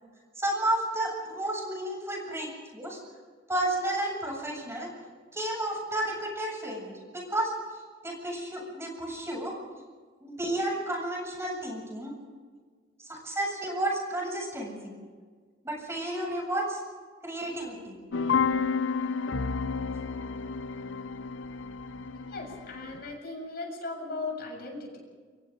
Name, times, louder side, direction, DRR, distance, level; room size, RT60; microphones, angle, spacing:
voice 1, 0.4-3.0 3.5-4.9 5.3-9.5 10.2-12.1 13.0-14.9 15.6-16.8 17.2-18.0, right 1 dB, 15° right, -1 dB, 7.7 m, -32 dB
sound 1, 18.1-23.1, left 5 dB, 75° left, 0.8 m, -31 dB
voice 2, 22.2-25.0, left 3 dB, 55° left, 1 dB, 7.3 m, -38 dB
29.0 x 24.5 x 3.9 m, 1.6 s
head